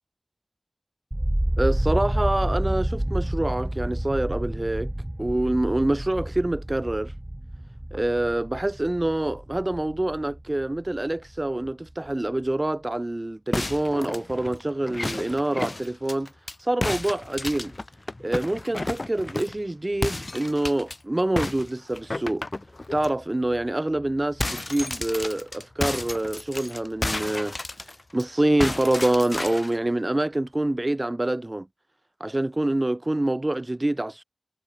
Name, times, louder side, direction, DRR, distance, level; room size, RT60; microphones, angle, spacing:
sound 1, 1.1-11.1 11.4-12.1, right 1 dB, 20° right, 1.4 m, -29 dB
voice 1, 1.6-4.9 5.2-7.1 7.9-16.3 16.6-17.7 18.2-22.4 22.9-31.7 32.2-34.2, right 1 dB, 35° right, 1.3 m, -26 dB
sound 2, 13.5-16.5 16.8-19.6 20.0-21.0 21.4-23.1 23.5-23.7 24.0-28.2 28.6-29.8, left 2 dB, 50° left, 5.2 m, -32 dB
wide cardioid pair, 60°, 0 cm